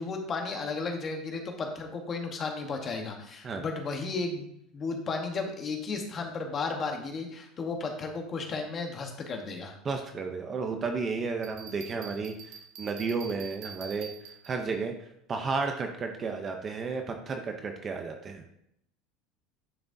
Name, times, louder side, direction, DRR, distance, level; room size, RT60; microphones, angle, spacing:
voice 1, 0.0-9.7, left 4 dB, 20° left, 3 dB, 1.0 m, -34 dB
voice 2, 9.8-14.1 14.4-14.9 15.3-18.4, right 4 dB, 20° right, 5 dB, 0.6 m, -32 dB
Bell, 11.4-14.8, right 6 dB, 40° right, 0.9 m, -46 dB
11.0 x 5.9 x 2.6 m, 0.76 s
cardioid pair, 175°, 0 cm